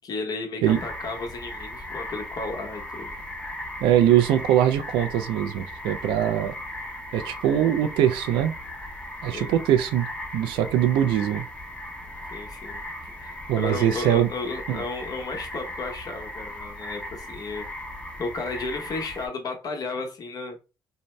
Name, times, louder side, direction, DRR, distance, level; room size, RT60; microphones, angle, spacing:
voice 1, 0.0-3.2 9.3-9.5 12.3-12.8 13.2-17.7 18.2-20.6, left 3 dB, 50° left, 0.9 m, -33 dB
sound 1, 0.6-19.3, left 1 dB, 15° left, 0.9 m, -37 dB
voice 2, 3.8-6.5 7.1-8.5 9.2-10.1 10.3-11.5 13.5-14.3 14.7-14.8, right 11 dB, 80° right, 0.4 m, -22 dB
2.6 x 2.0 x 3.2 m
supercardioid pair, 75°, 8 cm